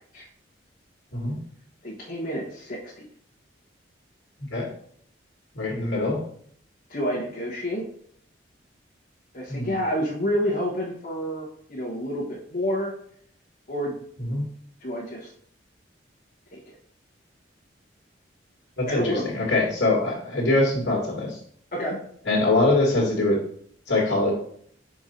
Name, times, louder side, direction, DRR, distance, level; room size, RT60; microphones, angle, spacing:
voice 1, 1.8-3.1 6.9-7.8 9.3-12.9 13.7-13.9 14.8-15.3 16.5-16.6 18.9-19.3 21.7-22.0, equal, 45° left, -6 dB, 1.3 m, -29 dB
voice 2, 5.5-6.2 9.5-9.7 14.2-14.4 18.8-21.4 22.3-23.4 23.9-24.3, left 2 dB, 65° left, -4 dB, 1.8 m, -23 dB
5.2 x 4.5 x 4.3 m, 0.63 s
head